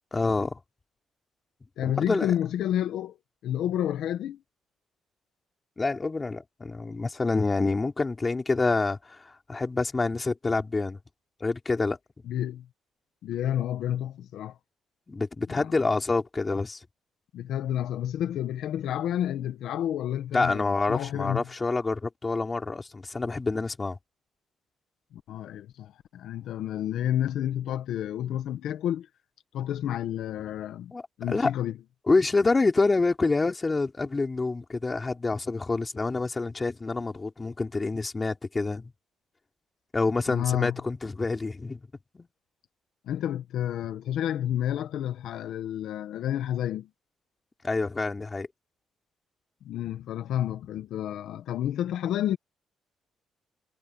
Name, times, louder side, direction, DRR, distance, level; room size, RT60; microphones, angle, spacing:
voice 1, 0.1-0.6 1.8-2.3 5.8-11.0 11.4-12.0 15.1-16.8 20.3-24.0 30.9-31.5 32.1-38.9 39.9-41.8 42.1-42.3 47.6-48.5, left 3 dB, 25° left, 4.3 m, -27 dB
voice 2, 1.8-3.2 3.4-4.4 12.2-12.7 13.2-14.6 15.5-15.7 17.3-21.4 25.1-29.1 29.5-30.9 31.2-31.7 40.3-40.8 43.0-46.9 49.6-52.4, left 11 dB, 80° left, 1.4 m, -30 dB
cardioid pair, 90°, 0 cm